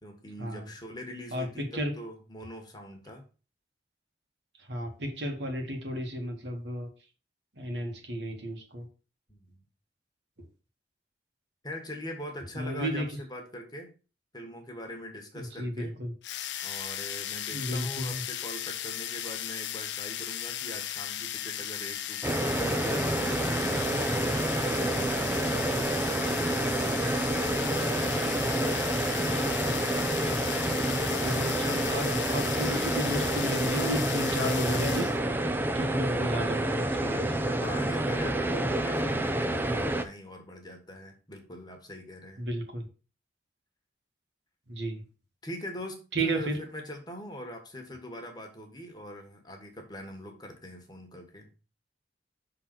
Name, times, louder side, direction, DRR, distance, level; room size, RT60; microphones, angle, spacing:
voice 1, 0.0-3.2 9.3-9.6 11.6-13.9 14.3-16.0 16.6-25.8 37.6-42.4 45.4-51.5, equal, 25° left, 3 dB, 1.5 m, -42 dB
voice 2, 1.3-2.0 4.6-6.9 7.6-8.9 12.5-13.2 15.4-16.1 16.5-16.9 17.5-18.2 29.6-29.8 31.2-37.6 42.4-42.8 44.7-45.0 46.1-46.6, equal, 80° right, 2 dB, 1.9 m, -33 dB
sound 1, 16.2-35.2, left 11 dB, 80° left, 0.6 m, -36 dB
sound 2, 22.2-40.0, right 1 dB, 10° right, 0.5 m, -28 dB
6.3 x 4.0 x 5.9 m, 0.35 s
head